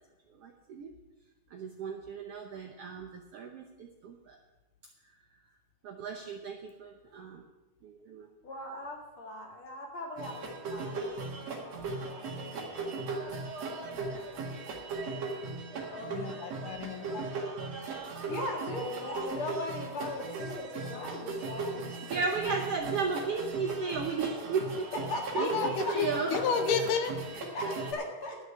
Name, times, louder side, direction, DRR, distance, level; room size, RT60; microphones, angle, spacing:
voice 1, 0.4-0.9 1.5-4.4 5.8-7.4 7.8-8.3 22.1-24.9 25.3-26.5, right 5 dB, 70° right, 3 dB, 1.4 m, -35 dB
voice 2, 8.4-10.4 10.6-12.5 13.9-14.2 15.9-16.4 18.3-22.4 24.9-25.9 26.3-26.4 27.3-28.4, left 1 dB, 45° left, 0 dB, 2.6 m, -39 dB
sound 1, 10.2-27.9, right 3 dB, 55° right, 2.7 m, -37 dB
voice 3, 16.1-17.3 25.4-27.2, left 6 dB, 80° left, 7 dB, 2.5 m, -31 dB
11.5 x 6.4 x 9.3 m, 1.1 s
omnidirectional pair, 3.8 m